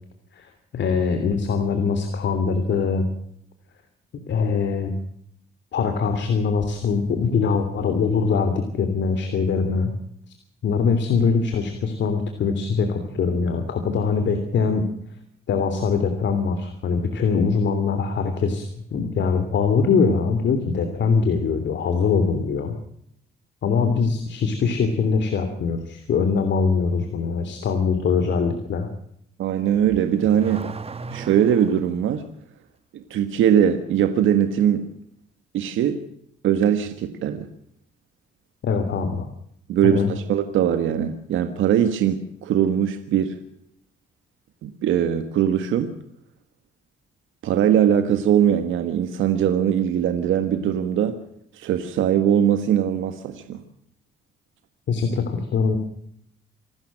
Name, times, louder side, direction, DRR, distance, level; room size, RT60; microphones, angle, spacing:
voice 1, 0.3-3.1 4.3-4.9 5.7-9.9 10.6-14.8 15.5-18.6 18.9-22.8 23.6-28.9 38.6-39.3 39.8-40.1 54.9-55.8, left 5 dB, 65° left, 7 dB, 3.1 m, -22 dB
voice 2, 29.4-30.7 31.1-32.3 32.9-34.9 35.5-36.0 36.4-37.5 39.7-43.4 44.6-45.9 47.4-51.2 51.5-53.6, right 9 dB, 80° right, 9 dB, 1.6 m, -21 dB
Car / Accelerating revving vroom, 29.7-31.9, right 4 dB, 30° right, 1.6 m, -35 dB
26.5 x 13.0 x 7.6 m, 0.72 s
cardioid pair, 90°, 20 cm